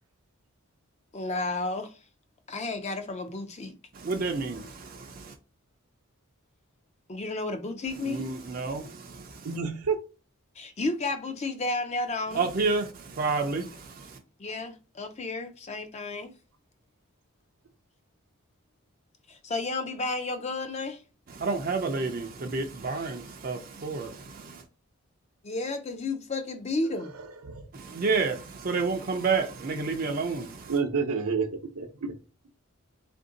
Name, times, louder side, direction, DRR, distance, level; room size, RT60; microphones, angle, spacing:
voice 1, 1.1-1.9 2.5-3.7 7.1-8.3 10.6-12.5 14.4-16.3 19.3-21.0 25.4-27.1, left 2 dB, 30° left, 0.4 m, -32 dB
voice 2, 3.9-5.3 8.1-9.5 12.3-14.2 21.3-24.6 27.7-30.7, right 4 dB, 40° right, 0.4 m, -30 dB
voice 3, 9.4-10.0 27.2-27.7 30.7-32.1, right 5 dB, 80° right, 0.6 m, -29 dB
3.5 x 2.6 x 3.7 m
head